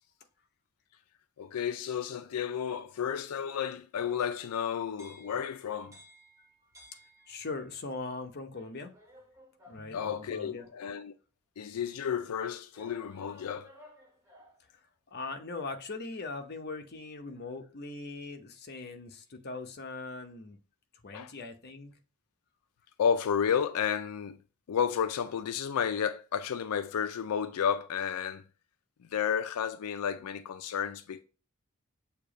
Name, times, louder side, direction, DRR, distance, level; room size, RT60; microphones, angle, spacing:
voice 1, 1.4-6.0 9.8-11.1 11.6-13.7 21.1-21.3 23.0-24.4 24.7-28.4 29.0-31.2, left 7 dB, 85° left, 0.4 m, -32 dB
sound 1, 4.0-7.7 8.5-10.8 11.6-11.7 12.7-14.7, equal, 15° right, 1.1 m, -58 dB
voice 2, 7.3-8.9 9.7-10.7 15.1-20.6 21.0-22.0, left 3 dB, 45° left, 0.7 m, -40 dB
6.8 x 2.8 x 5.0 m
head